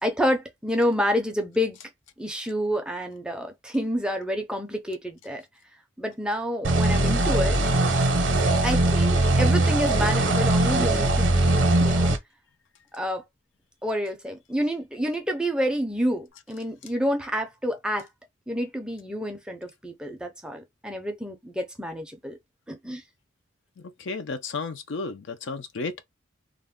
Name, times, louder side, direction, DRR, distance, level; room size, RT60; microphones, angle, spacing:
voice 1, 0.0-1.8 2.2-5.4 6.0-7.6 8.6-12.1 12.9-13.2 13.8-18.1 18.5-22.4 22.7-23.0, equal, 5° right, 0.5 m, -28 dB
sound 1, 6.6-12.2, right 2 dB, 60° right, 0.7 m, -21 dB
voice 2, 23.8-26.0, left 3 dB, 60° left, 0.4 m, -33 dB
2.4 x 2.1 x 3.5 m
head